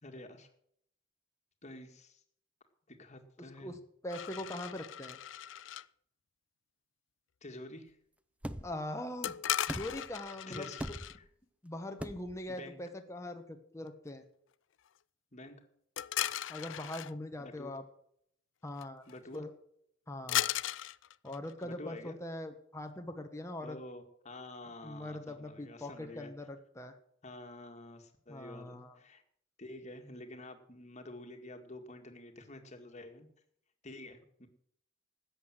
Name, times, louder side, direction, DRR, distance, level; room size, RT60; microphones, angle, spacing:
voice 1, 0.0-0.5 1.6-2.2 2.9-3.8 7.4-8.0 10.5-10.8 11.1-11.2 12.5-12.8 15.3-15.6 17.4-17.7 19.1-19.4 21.6-22.2 23.6-26.3 27.2-29.2 29.6-33.3 33.8-34.5, left 1 dB, 35° left, 5 dB, 2.0 m, -48 dB
voice 2, 4.0-5.2 8.6-9.3 9.7-10.7 11.6-14.2 16.5-17.8 18.6-19.0 19.3-19.5 20.1-20.5 21.2-23.8 24.8-26.9 28.3-29.0, left 1 dB, 15° left, 5 dB, 1.2 m, -42 dB
sound 1, 4.1-5.9 9.2-11.2 16.0-17.1 18.8-18.9 19.1-19.4 20.3-21.7, left 12 dB, 70° left, 0.4 m, -37 dB
sound 2, 8.4-8.8 9.7-10.2 10.8-11.3 12.0-12.4, right 1 dB, 5° right, 0.6 m, -41 dB
13.5 x 8.6 x 7.7 m, 0.69 s
head